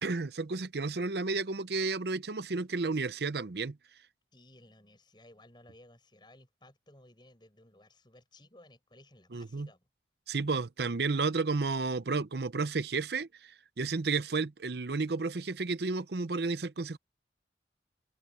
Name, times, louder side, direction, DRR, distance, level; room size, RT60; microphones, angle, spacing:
voice 1, 0.0-3.8 9.3-9.7 10.3-17.0, right 4 dB, 65° right, 0.7 m, -32 dB
voice 2, 4.3-9.9, left 1 dB, 25° left, 7.5 m, -58 dB
head